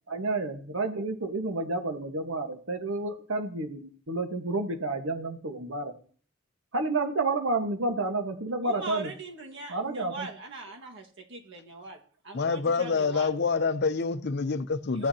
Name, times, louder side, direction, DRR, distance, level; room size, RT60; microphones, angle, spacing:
voice 1, 0.1-5.9 6.7-9.1 9.7-10.3, right 2 dB, 85° right, 1.4 m, -30 dB
voice 2, 8.6-13.3 14.9-15.1, right 3 dB, 65° right, 1.7 m, -41 dB
voice 3, 12.3-15.1, left 4 dB, 55° left, 0.6 m, -27 dB
15.5 x 9.0 x 2.9 m
head